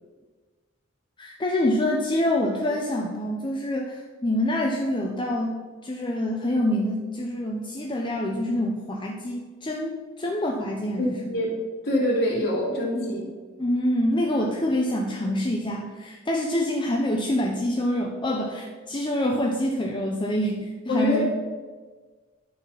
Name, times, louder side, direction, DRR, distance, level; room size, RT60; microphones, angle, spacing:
voice 1, 1.2-5.6 5.8-11.3 13.6-21.3, left 1 dB, 25° left, 0 dB, 0.7 m, -26 dB
voice 2, 11.0-11.6 11.8-13.3 20.9-21.3, left 1 dB, 55° left, -7 dB, 2.9 m, -24 dB
11.5 x 4.3 x 5.6 m, 1.4 s
head